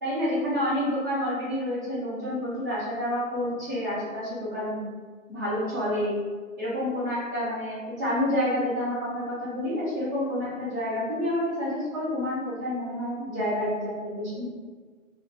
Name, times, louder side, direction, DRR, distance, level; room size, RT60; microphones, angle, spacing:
voice 1, 0.0-4.8 5.3-6.2 6.6-14.5, left 1 dB, 15° right, -10 dB, 0.7 m, -29 dB
2.5 x 2.2 x 3.4 m, 1.4 s
figure-of-eight pair, 140°, 41 cm